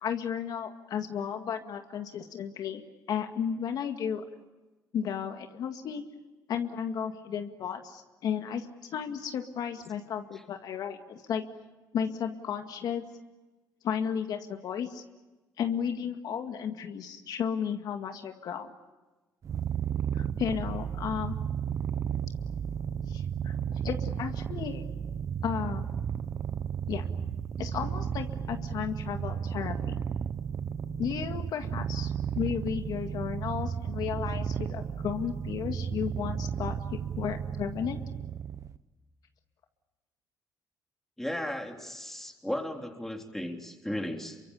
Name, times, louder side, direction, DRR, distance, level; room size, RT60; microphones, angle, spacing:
voice 1, 0.0-2.8 3.1-4.2 4.9-6.0 6.5-8.7 8.9-11.4 11.9-13.0 13.8-15.0 15.6-18.7 20.1-21.4 23.1-24.8 25.4-25.9 26.9-27.0 27.6-30.0 31.0-36.8 37.2-38.0, left 8 dB, 65° left, 6 dB, 2.0 m, -33 dB
Purr, 19.4-38.8, right 8 dB, 45° right, 1.0 m, -33 dB
voice 2, 41.2-44.4, left 1 dB, 5° left, 3 dB, 3.6 m, -35 dB
28.5 x 24.0 x 8.4 m, 1.2 s
cardioid pair, 100°, 7 cm